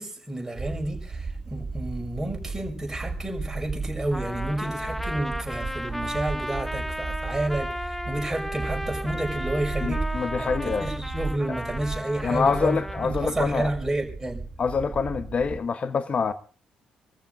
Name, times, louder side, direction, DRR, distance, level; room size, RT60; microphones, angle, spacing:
voice 1, 0.0-14.4, right 1 dB, 15° right, 5.4 m, -30 dB
sound 1, 0.5-15.6, right 3 dB, 35° right, 3.0 m, -35 dB
Trumpet, 4.1-13.1, equal, 5° left, 0.7 m, -35 dB
voice 2, 9.8-10.9 12.2-13.7 14.6-16.3, left 5 dB, 40° left, 1.0 m, -26 dB
27.5 x 14.0 x 2.6 m
hypercardioid pair, 45°, 3 cm